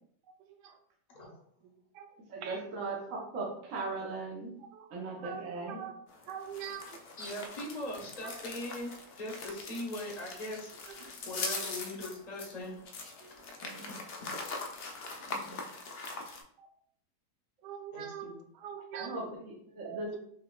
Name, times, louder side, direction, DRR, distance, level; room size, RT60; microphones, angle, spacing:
voice 1, 0.4-0.8 1.6-2.1 2.4-2.7 4.6-4.9 5.2-5.9 6.3-7.0 8.2-8.4 10.9-11.7 13.2-13.3 14.9-15.0 16.6-16.7 17.6-19.1 19.8-20.2, right 8 dB, 85° right, 6 dB, 1.2 m, -44 dB
voice 2, 2.3-4.5 4.9-5.8 13.6-13.9 15.3-15.6 18.9-20.2, right 3 dB, 55° right, -2 dB, 1.2 m, -39 dB
sound 1, 6.1-16.4, left 3 dB, 70° left, 0.5 m, -42 dB
voice 3, 7.2-8.9 9.2-12.8 17.9-18.4, left 1 dB, 30° left, -2 dB, 0.9 m, -40 dB
5.9 x 3.2 x 2.3 m, 0.67 s
omnidirectional pair, 1.8 m